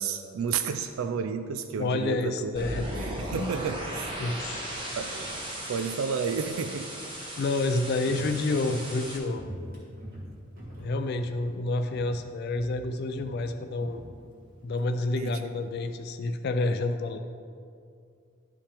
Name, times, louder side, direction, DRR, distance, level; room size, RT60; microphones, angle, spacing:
voice 1, 0.0-2.5 3.0-4.2 4.9-5.2 5.7-6.9 15.2-15.4, right 6 dB, 85° right, 9 dB, 0.4 m, -31 dB
voice 2, 1.8-3.5 4.2-4.7 7.4-9.4 10.8-14.0 14.6-17.2, left 2 dB, 50° left, 7 dB, 0.4 m, -29 dB
sound 1, 2.6-9.2, right 1 dB, 25° right, 1.2 m, -37 dB
Walk footsteps, 7.3-11.6 11.9-12.3 12.5-14.9 15.1-15.2, equal, 45° right, 2.2 m, -44 dB
11.5 x 5.5 x 3.4 m, 2.3 s
head